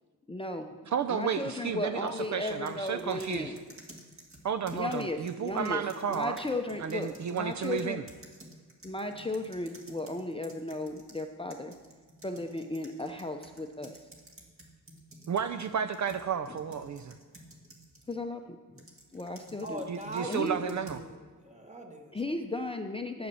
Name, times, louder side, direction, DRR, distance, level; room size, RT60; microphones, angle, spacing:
voice 1, 0.3-0.7 1.1-3.6 4.7-5.8 6.1-8.0 8.8-11.7 12.2-13.9 18.1-18.8 19.1-19.9 20.3-20.6 22.1-23.3, left 2 dB, 15° left, 5 dB, 0.6 m, -35 dB
voice 2, 0.9-3.5 4.4-6.4 6.8-8.0 15.3-17.1 19.9-21.0, right 7 dB, 55° right, 10 dB, 0.5 m, -32 dB
sound 1, 2.1-11.2 11.5-18.2 18.8-21.1, right 1 dB, 35° right, 1.9 m, -53 dB
voice 3, 19.6-22.1, right 1 dB, 20° right, 3 dB, 1.4 m, -40 dB
9.2 x 8.7 x 7.0 m, 1.4 s
wide cardioid pair, 125°, 36 cm